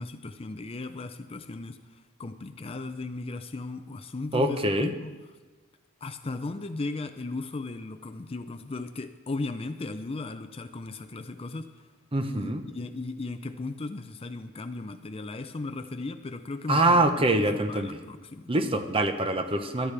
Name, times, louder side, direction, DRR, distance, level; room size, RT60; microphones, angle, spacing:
voice 1, 0.0-5.1 6.0-11.8 12.3-18.5, left 3 dB, 30° left, 9 dB, 0.5 m, -36 dB
voice 2, 4.3-4.9 12.1-12.6 16.7-18.0 18.5-19.9, right 1 dB, 25° right, 7 dB, 0.8 m, -24 dB
18.0 x 12.5 x 3.4 m, 1.3 s
head